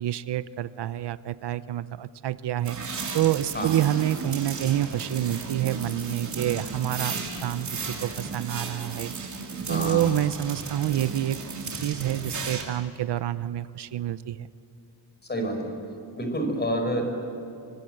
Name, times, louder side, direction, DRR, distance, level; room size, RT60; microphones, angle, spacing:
voice 1, 0.0-2.8 3.1-7.2 7.4-9.1 9.7-11.4 11.7-14.5, right 12 dB, 75° right, 15 dB, 0.7 m, -27 dB
sound 1, 2.6-12.6, right 4 dB, 45° right, 3.3 m, -35 dB
voice 2, 9.7-10.1 15.3-15.7 16.1-17.1, equal, 25° left, 4 dB, 4.8 m, -28 dB
26.0 x 24.5 x 7.7 m, 2.7 s
wide cardioid pair, 160°, 41 cm